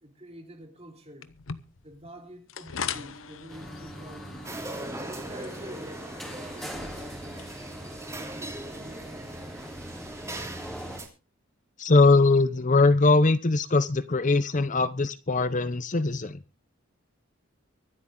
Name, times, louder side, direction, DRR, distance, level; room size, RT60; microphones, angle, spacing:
voice 1, 0.0-1.3 1.8-4.4 5.0-7.5 8.1-9.3, right 1 dB, 30° right, 3.2 m, -47 dB
sound 1, 1.2-9.1, left 6 dB, 75° left, 0.9 m, -42 dB
sound 2, 3.5-11.0, equal, ahead, 3.1 m, -42 dB
sound 3, 4.5-11.1, right 2 dB, 15° right, 3.0 m, -40 dB
voice 2, 11.8-16.4, left 3 dB, 40° left, 0.7 m, -21 dB
24.5 x 8.4 x 3.8 m
head